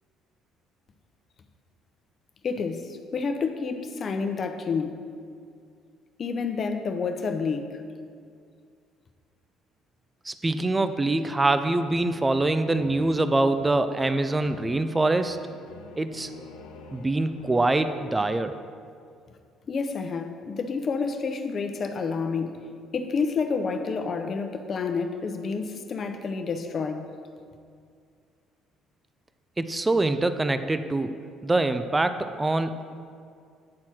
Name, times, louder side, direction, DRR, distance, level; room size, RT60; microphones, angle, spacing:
voice 1, 2.4-5.0 6.2-7.8 19.7-22.6 22.9-27.1, left 5 dB, 45° left, 6 dB, 0.8 m, -29 dB
voice 2, 10.2-15.4 16.0-16.3 16.9-18.6 29.6-32.9, right 2 dB, 20° right, 10 dB, 0.5 m, -24 dB
sound 1, 11.6-17.9, left 3 dB, 85° left, 0.8 m, -47 dB
9.6 x 4.3 x 6.1 m, 2.3 s
hypercardioid pair, 60°, 0 cm